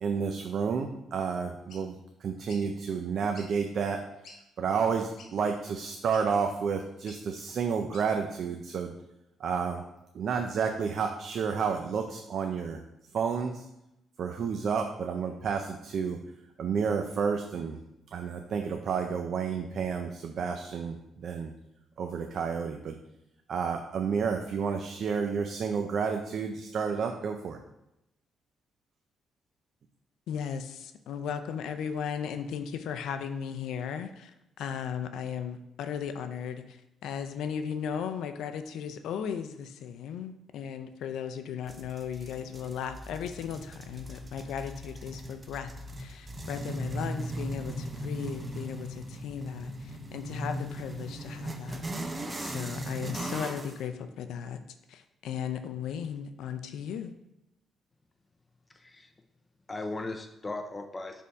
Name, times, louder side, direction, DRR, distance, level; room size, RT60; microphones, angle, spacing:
voice 1, 0.0-4.0 4.6-8.9 9.4-9.8 10.1-12.8 13.1-13.7 14.2-16.2 16.6-17.8 18.1-21.5 22.0-23.0 23.5-27.6, right 6 dB, 60° right, 4 dB, 0.5 m, -30 dB
sound 1, 1.7-1.8 2.5-2.6 3.3-3.5 4.0-4.1 4.2-4.4 5.2-5.3 6.1-6.3 7.1-7.2 7.9-8.1, left 3 dB, 65° left, 1.5 m, -49 dB
voice 2, 30.3-45.7 46.0-51.8 52.4-54.6 54.9-57.1, left 7 dB, 80° left, 9 dB, 0.5 m, -36 dB
sound 2, 41.7-53.8, right 1 dB, 25° right, 0.7 m, -38 dB
voice 3, 58.7-59.1 59.7-61.2, left 2 dB, 25° left, 5 dB, 0.5 m, -37 dB
6.6 x 3.6 x 4.1 m, 0.89 s
cardioid pair, 90°, 0 cm